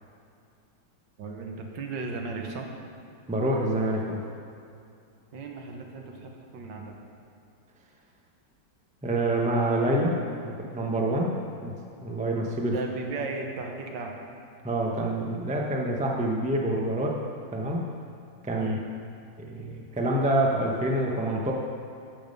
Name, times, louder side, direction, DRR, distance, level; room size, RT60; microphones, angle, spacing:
voice 1, 1.2-2.7 5.3-7.0 12.7-14.2 18.6-18.9, right 3 dB, 75° right, 2 dB, 1.7 m, -36 dB
voice 2, 3.3-4.2 9.0-10.2 10.4-11.7 12.0-12.7 14.6-17.2 17.5-17.8 18.4-18.8 19.4-21.5, right 1 dB, 10° right, -1 dB, 0.3 m, -27 dB
13.0 x 5.5 x 5.3 m, 2.5 s
omnidirectional pair, 2.0 m